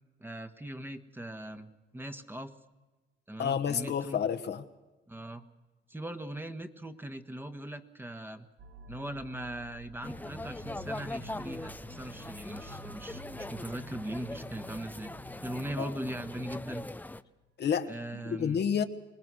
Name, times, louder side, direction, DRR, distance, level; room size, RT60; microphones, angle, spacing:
voice 1, 0.2-2.6 3.3-4.2 5.1-5.4 5.9-8.5 8.9-15.1 15.4-16.8 17.9-18.6, right 1 dB, 10° right, 1.5 m, -40 dB
voice 2, 3.4-4.6 15.8-15.9 17.6-18.8, left 7 dB, 60° left, 1.3 m, -30 dB
sound 1, 8.6-17.2, right 2 dB, 65° right, 1.6 m, -52 dB
sound 2, 10.0-17.2, left 2 dB, 10° left, 0.7 m, -41 dB
25.5 x 20.0 x 6.3 m
cardioid pair, 90°, 20 cm